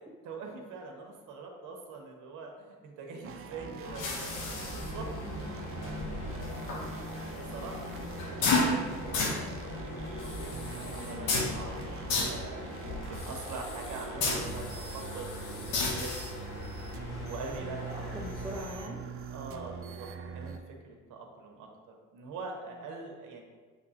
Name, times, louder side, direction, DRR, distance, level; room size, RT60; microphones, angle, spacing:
voice 1, 0.0-5.1 5.5-5.6 6.3-6.8 7.3-7.9 8.3-16.3 16.6-16.9 17.2-18.2 19.3-20.1 20.3-23.4, right 3 dB, 80° right, 1 dB, 0.9 m, -44 dB
sound 1, 3.2-20.6, right 6 dB, 50° right, 0.4 m, -44 dB
sound 2, 3.5-12.7, left 2 dB, 40° left, 1.4 m, -44 dB
sound 3, 3.8-18.7, left 3 dB, 90° left, 0.9 m, -35 dB
voice 2, 5.1-5.5 17.6-19.0 22.9-23.0, right 1 dB, 15° right, -6 dB, 0.9 m, -42 dB
7.1 x 2.7 x 2.7 m, 1.4 s
cardioid pair, 90°, 30 cm